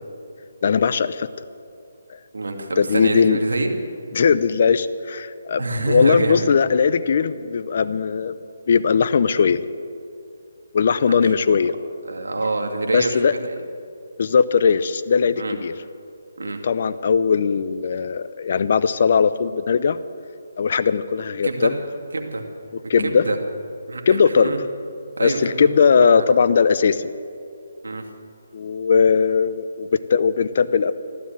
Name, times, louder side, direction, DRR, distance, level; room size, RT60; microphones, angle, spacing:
voice 1, 0.6-1.3 2.1-2.2 2.8-3.4 4.1-8.3 8.7-9.6 10.7-11.7 12.9-13.3 14.2-15.7 16.4-20.0 20.6-21.7 22.9-23.3 24.1-24.6 25.2-27.1 28.5-30.9, left 6 dB, 50° left, 13 dB, 0.7 m, -19 dB
voice 2, 2.3-3.7 5.6-6.5 11.0-11.2 12.1-13.5 15.4-15.5 16.4-16.6 21.4-21.7 22.1-22.4 23.0-23.4 23.9-24.6 25.2-25.7 26.0-26.2 27.8-28.0, right 2 dB, 85° right, 3 dB, 2.4 m, -25 dB
14.5 x 12.5 x 7.5 m, 2.5 s
hypercardioid pair, 160°, 0 cm